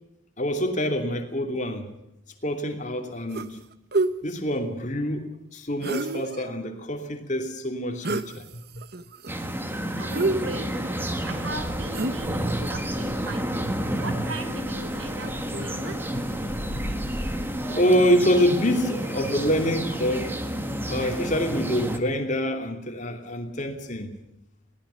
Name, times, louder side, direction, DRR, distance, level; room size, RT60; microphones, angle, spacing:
voice 1, 0.4-1.9 2.4-3.6 4.2-8.4 16.1-17.1 17.7-20.4 20.9-24.2, equal, 35° left, 5 dB, 2.7 m, -26 dB
sound 1, 3.3-3.6 3.9-4.1 5.8-6.5 8.0-8.3 8.8-9.3 10.1-10.9 11.9-12.4, right 2 dB, 50° right, 1.1 m, -27 dB
sound 2, 9.3-22.0, right 1 dB, 10° right, 1.7 m, -30 dB
voice 2, 10.0-10.8 11.2-13.6 13.9-16.0, right 2 dB, 70° right, 9 dB, 4.1 m, -38 dB
sound 3, 11.1-17.5, equal, 10° left, 5.7 m, -40 dB
22.0 x 18.5 x 7.0 m, 0.86 s
head